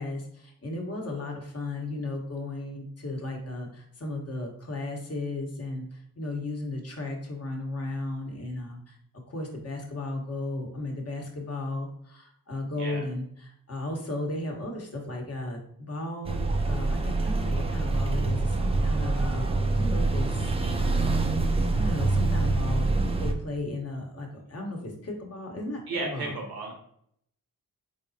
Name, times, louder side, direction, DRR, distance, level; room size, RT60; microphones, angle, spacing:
voice 1, 0.0-9.0 9.3-20.5 21.7-22.9 23.2-26.3, left 2 dB, 40° left, 1 dB, 1.1 m, -35 dB
sound 1, 16.2-23.3, right 3 dB, 15° right, 0.5 m, -25 dB
voice 2, 25.9-26.8, right 2 dB, 85° right, 0 dB, 1.3 m, -34 dB
4.0 x 3.5 x 2.7 m, 0.68 s
cardioid pair, 65°, 37 cm